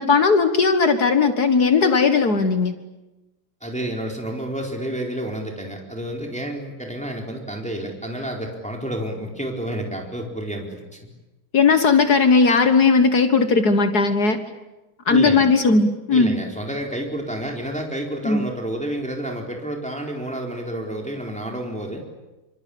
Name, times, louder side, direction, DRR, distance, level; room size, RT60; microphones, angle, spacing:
voice 1, 0.0-2.7 11.5-14.4 15.1-16.3 18.2-18.4, left 4 dB, 50° left, 8 dB, 2.0 m, -17 dB
voice 2, 3.6-11.1 15.1-15.4 16.1-22.1, right 1 dB, 5° left, 1 dB, 4.2 m, -30 dB
26.5 x 25.5 x 8.6 m, 1.0 s
omnidirectional pair, 2.2 m